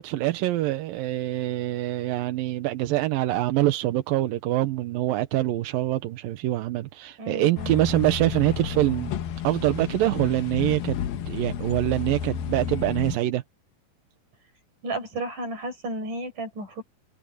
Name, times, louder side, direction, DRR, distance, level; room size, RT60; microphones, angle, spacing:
voice 1, 0.0-9.1 9.4-11.0 11.3-13.4, right 15 dB, 85° right, 2.7 m, -25 dB
voice 2, 7.2-7.7 14.8-16.8, right 2 dB, 60° right, 8.6 m, -33 dB
sound 1, 7.6-13.2, left 8 dB, 90° left, 3.3 m, -32 dB
omnidirectional pair, 4.1 m